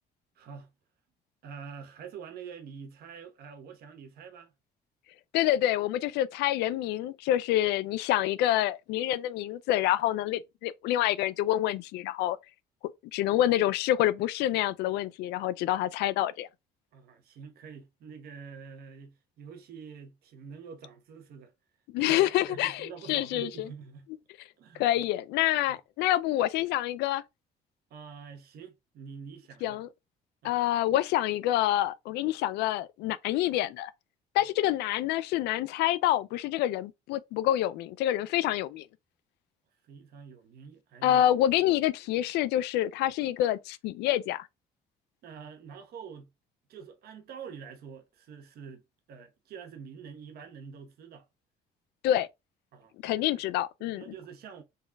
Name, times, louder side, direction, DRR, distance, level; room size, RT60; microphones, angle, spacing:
voice 1, 0.4-0.7 1.4-4.5 16.9-21.5 22.0-24.1 24.6-25.0 27.9-29.8 30.4-30.6 34.4-34.5 39.8-41.2 45.2-46.3 46.7-48.8 49.1-51.3 52.7-52.9 53.3-53.4 53.8-54.6, right 6 dB, 65° right, 1.1 m, -46 dB
voice 2, 5.3-12.4 12.8-16.5 21.9-23.7 24.8-27.2 29.6-29.9 30.4-33.9 34.3-38.9 41.0-44.5 52.0-52.3 53.0-54.1, left 13 dB, 85° left, 0.4 m, -27 dB
4.0 x 3.8 x 2.3 m
cardioid pair, 110°, 17 cm